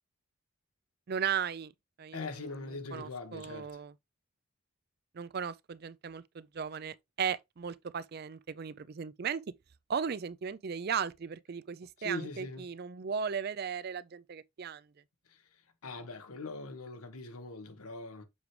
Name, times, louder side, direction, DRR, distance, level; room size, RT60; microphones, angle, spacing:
voice 1, 1.1-1.7 2.0-2.3 2.9-3.9 5.1-9.4 9.9-14.9, right 7 dB, 45° right, 0.4 m, -36 dB
voice 2, 2.1-3.8 12.0-12.7 15.3-18.3, left 2 dB, 85° left, 1.2 m, -42 dB
7.1 x 4.7 x 3.2 m
head